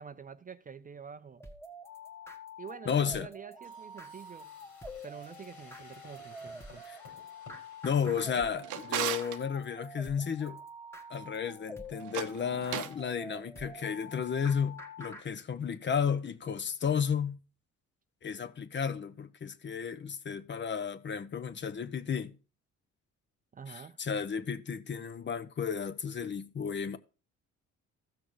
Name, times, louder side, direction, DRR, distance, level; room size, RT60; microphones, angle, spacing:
voice 1, 0.0-1.4 2.6-4.5 5.0-6.9 23.5-24.0, right 6 dB, 30° right, 0.4 m, -47 dB
sound 1, 1.4-15.2, left 1 dB, 10° left, 1.5 m, -47 dB
voice 2, 2.9-3.3 6.9-7.0 7.8-10.6 11.1-17.4 18.2-22.4 23.7-27.0, left 7 dB, 40° left, 0.7 m, -33 dB
sound 2, 3.6-8.5, left 3 dB, 85° left, 3.9 m, -55 dB
Drawer open or close, 8.2-9.4 12.0-13.0, right 12 dB, 85° right, 0.7 m, -37 dB
15.0 x 6.2 x 3.1 m
cardioid pair, 90°, 30 cm